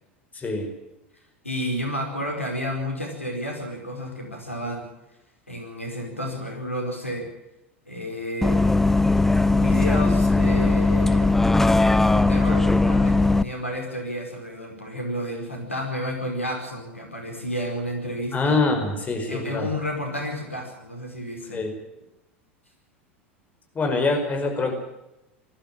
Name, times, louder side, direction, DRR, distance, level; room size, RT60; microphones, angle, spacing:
voice 1, 0.3-0.7 18.3-19.7 21.5-21.7 23.7-24.7, left 3 dB, 20° left, 5 dB, 5.0 m, -24 dB
voice 2, 1.4-4.9 5.5-7.3 7.9-8.7 9.5-11.3 12.1-18.6 19.3-21.6, equal, 90° left, 2 dB, 4.9 m, -31 dB
Bus, 8.4-13.4, left 2 dB, 5° left, 0.7 m, -19 dB
20.0 x 14.5 x 9.0 m, 0.93 s
figure-of-eight pair, 80°, 7 cm